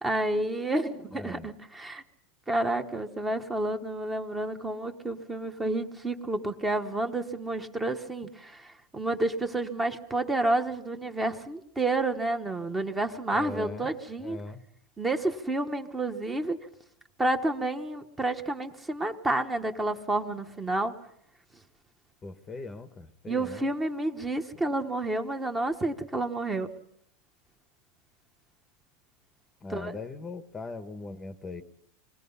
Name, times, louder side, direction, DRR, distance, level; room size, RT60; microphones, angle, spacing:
voice 1, 0.0-2.0 2.5-14.4 15.0-16.6 17.2-21.0 23.3-26.7 29.7-30.0, right 2 dB, 10° right, 6 dB, 1.1 m, -30 dB
voice 2, 1.1-1.5 13.3-13.9 14.2-14.6 22.2-23.7 24.5-24.6 29.6-31.6, left 3 dB, 15° left, 10 dB, 1.0 m, -40 dB
26.0 x 20.0 x 5.6 m, 0.69 s
supercardioid pair, 160°, 0 cm